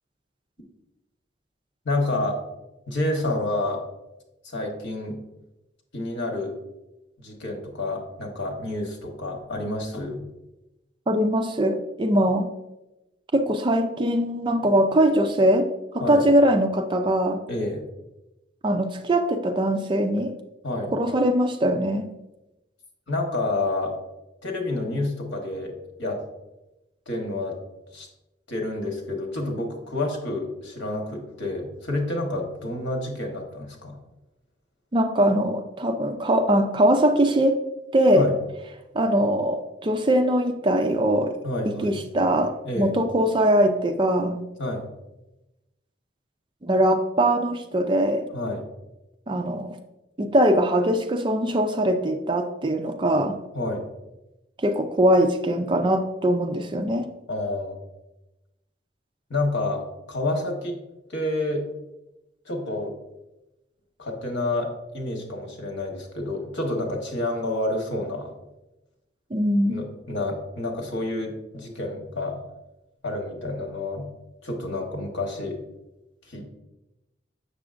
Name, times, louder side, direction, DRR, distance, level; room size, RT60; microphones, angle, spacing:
voice 1, 1.8-2.4 2.9-3.8 4.4-5.2 5.9-6.5 7.2-10.2 16.0-16.2 17.5-17.8 20.6-20.9 23.1-24.0 24.4-25.7 26.0-26.2 27.1-27.6 27.9-28.1 28.5-34.0 38.1-38.4 41.4-42.0 42.6-43.0 44.6-44.8 48.3-48.6 53.5-53.8 57.3-57.8 59.3-60.8 61.1-61.6 62.5-62.9 64.0-68.3 69.7-72.4 73.0-74.1 74.4-75.6 76.3-76.5, left 2 dB, 85° left, 2 dB, 1.2 m, -29 dB
voice 2, 11.1-12.5 13.3-15.7 15.9-17.4 18.6-20.3 20.9-22.1 34.9-37.6 37.9-38.3 38.9-41.3 41.7-44.5 46.6-48.3 49.3-49.7 50.2-53.4 54.6-57.1 69.3-69.8, right 1 dB, 25° right, 6 dB, 0.4 m, -21 dB
6.8 x 6.2 x 2.5 m, 0.97 s
head